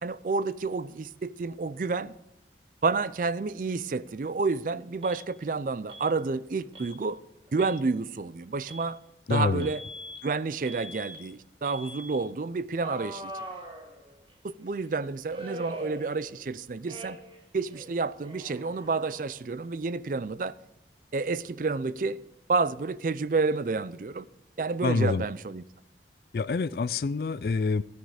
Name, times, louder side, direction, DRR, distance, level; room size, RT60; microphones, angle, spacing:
voice 1, 0.0-2.1 2.8-7.2 7.5-9.0 9.3-9.8 10.2-13.3 14.4-17.2 17.5-20.5 21.1-22.2 22.5-24.3 24.6-25.6, right 4 dB, 50° right, 0.4 m, -30 dB
Alarm, 5.0-5.2 5.9-6.1 6.7-7.0 7.5-7.8 8.7-8.9 9.6-10.2 10.6-11.2 11.6-12.2 12.8-14.3 15.3-16.5 16.8-17.4 17.7-19.4, equal, 30° right, 1.5 m, -43 dB
voice 2, 9.3-9.7 24.8-25.2 26.3-27.8, left 4 dB, 55° left, 0.4 m, -26 dB
13.5 x 9.4 x 5.0 m
head